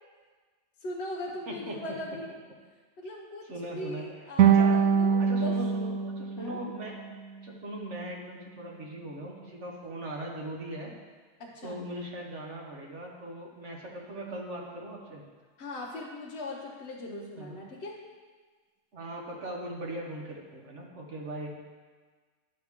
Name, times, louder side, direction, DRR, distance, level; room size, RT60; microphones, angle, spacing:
voice 1, 0.8-2.3 3.0-5.6 6.4-6.6 11.4-11.8 15.6-18.0, left 1 dB, 50° left, -3 dB, 1.0 m, -39 dB
voice 2, 1.5-1.8 3.4-4.0 4.4-4.8 5.2-7.0 7.4-11.0 11.6-15.2 17.4-17.6 18.9-21.5, right 1 dB, 50° right, -1 dB, 1.4 m, -39 dB
sound 1, 4.4-7.5, right 7 dB, 70° right, 0.9 m, -24 dB
9.2 x 6.2 x 3.6 m, 1.5 s
omnidirectional pair, 1.6 m